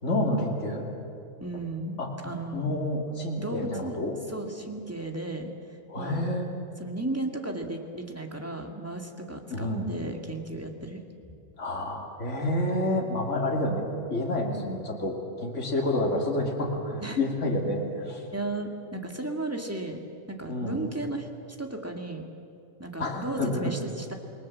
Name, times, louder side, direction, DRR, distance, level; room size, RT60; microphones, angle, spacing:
voice 1, 0.0-0.9 2.0-2.1 2.5-4.1 5.9-6.5 9.5-9.9 11.6-18.2 20.5-20.8 23.0-23.6, left 1 dB, 55° left, 0 dB, 3.1 m, -29 dB
voice 2, 1.4-2.7 3.4-4.0 4.3-5.5 6.0-6.2 6.8-11.0 17.0-17.2 18.3-20.0 20.3-21.3 21.6-22.3 22.8-24.1, right 2 dB, 10° right, 3 dB, 2.1 m, -34 dB
27.5 x 20.5 x 7.5 m, 2.7 s
omnidirectional pair, 1.5 m